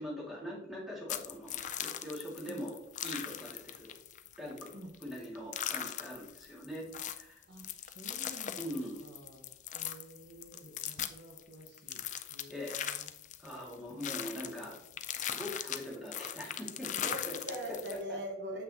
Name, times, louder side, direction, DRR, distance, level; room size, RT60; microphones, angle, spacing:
voice 1, 0.0-3.9 4.4-6.8 7.2-7.4 8.6-9.1 12.5-12.9 13.4-14.8 15.2-17.1, equal, ahead, -5 dB, 2.0 m, -42 dB
sound 1, 1.1-18.0, left 10 dB, 40° left, 0.4 m, -40 dB
voice 2, 4.7-5.1 7.5-8.7 9.0-9.4 9.7-12.0 12.3-13.1 13.9-14.5 14.7-14.8 16.9-18.6, equal, 70° right, 2 dB, 1.1 m, -45 dB
7.4 x 5.9 x 2.8 m, 0.81 s
head